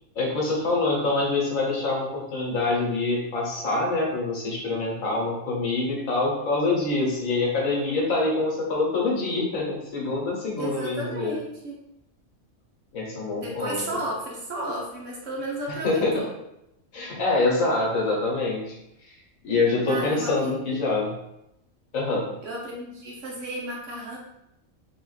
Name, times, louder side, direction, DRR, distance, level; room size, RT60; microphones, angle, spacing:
voice 1, 0.1-11.4 12.9-14.0 15.7-16.2 16.9-18.8 19.1-19.2 19.4-21.1 21.9-22.3, left 3 dB, 75° left, -2 dB, 1.4 m, -25 dB
voice 2, 10.6-11.8 13.4-16.3 19.9-20.5 22.4-24.2, right 1 dB, 65° right, -3 dB, 1.3 m, -33 dB
3.9 x 2.5 x 3.9 m, 0.84 s
omnidirectional pair, 1.4 m